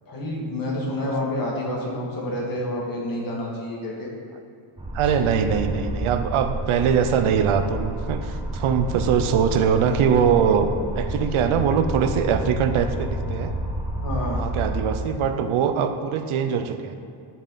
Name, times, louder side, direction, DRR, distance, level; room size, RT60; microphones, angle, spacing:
voice 1, 0.1-4.1 5.0-5.1 13.9-14.4, left 1 dB, 40° left, -4 dB, 2.1 m, -29 dB
sound 1, 4.8-15.0, right 1 dB, 10° right, 1.1 m, -30 dB
voice 2, 4.9-13.6 14.3-16.9, right 7 dB, 75° right, 8 dB, 0.7 m, -22 dB
10.5 x 6.9 x 4.0 m, 2.4 s
cardioid pair, 140°, 50 cm